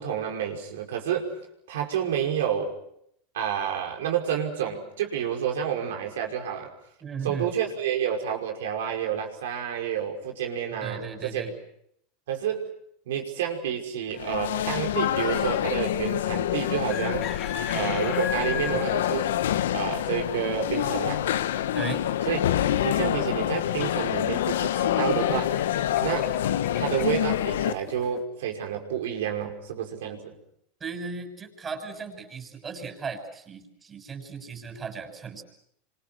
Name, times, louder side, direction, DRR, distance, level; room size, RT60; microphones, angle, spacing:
voice 1, 0.0-1.3 1.7-2.8 3.3-6.7 7.2-11.5 12.3-12.6 13.1-17.2 17.7-19.3 19.7-21.2 22.3-22.4 22.8-25.6 26.0-26.4 26.7-30.3, right 9 dB, 85° right, 3 dB, 5.6 m, -29 dB
voice 2, 7.0-7.5 10.8-11.5 21.7-22.0 30.8-35.4, right 5 dB, 20° right, 4 dB, 6.4 m, -36 dB
sound 1, 14.1-27.7, left 11 dB, 90° left, 1.1 m, -27 dB
sound 2, 15.2-15.7 16.7-28.2, left 8 dB, 45° left, 2.7 m, -39 dB
28.0 x 26.0 x 6.2 m, 0.71 s
supercardioid pair, 125°, 0 cm